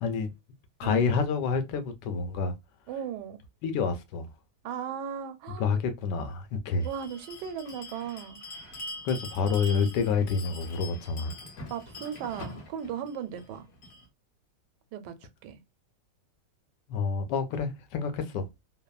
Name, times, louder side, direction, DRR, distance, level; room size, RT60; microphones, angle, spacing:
voice 1, 0.0-0.3 0.8-2.5 3.6-4.3 5.6-6.9 9.0-11.4 16.9-18.5, left 5 dB, 85° left, 1.2 m, -28 dB
voice 2, 2.9-3.4 4.6-5.7 6.8-8.4 11.7-13.7 14.9-15.2 15.4-15.6, right 8 dB, 85° right, 1.2 m, -37 dB
Bell, 6.8-14.1, left 1 dB, 60° left, 1.4 m, -44 dB
3.3 x 2.0 x 2.2 m
omnidirectional pair, 1.8 m